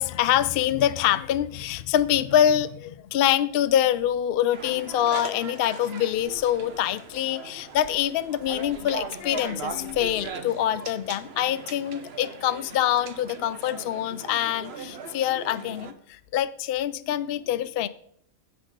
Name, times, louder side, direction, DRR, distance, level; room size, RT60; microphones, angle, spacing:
voice 1, 0.0-17.9, left 11 dB, 65° left, 14 dB, 0.6 m, -25 dB
sound 1, 4.5-15.9, right 4 dB, 50° right, 1.2 m, -39 dB
16.0 x 5.8 x 5.1 m, 0.67 s
omnidirectional pair, 1.4 m